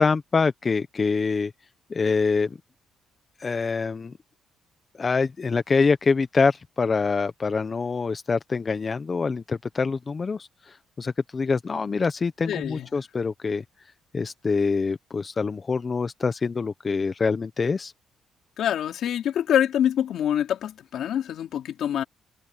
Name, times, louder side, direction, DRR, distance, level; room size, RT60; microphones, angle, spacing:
voice 1, 0.0-1.5 1.9-2.6 3.4-4.1 5.0-13.6 14.1-17.9, left 4 dB, 35° left, 1.0 m, -25 dB
voice 2, 12.5-12.9 18.6-22.0, left 10 dB, 75° left, 3.1 m, -25 dB
cardioid pair, 90°, 0 cm